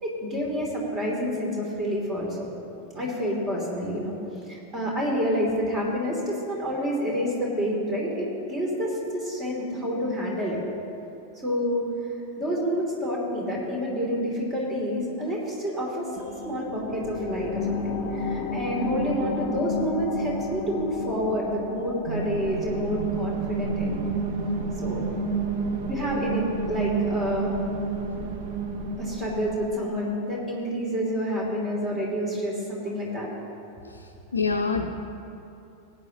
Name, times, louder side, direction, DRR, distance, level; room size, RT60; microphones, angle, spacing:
voice 1, 0.0-2.5 2.9-4.1 4.5-10.6 11.4-11.9 12.4-17.8 18.1-24.0 24.8-25.0 25.9-27.6 29.0-33.3, equal, 20° right, -2 dB, 3.1 m, -28 dB
sound 1, 16.2-27.3 27.7-27.8, left 4 dB, 40° left, 0.9 m, -34 dB
sound 2, 22.1-29.8, right 4 dB, 50° right, 1.0 m, -30 dB
voice 2, 33.8-35.0, left 4 dB, 75° left, 2 dB, 0.5 m, -27 dB
18.0 x 9.3 x 3.0 m, 2.7 s
figure-of-eight pair, 90°, 0 cm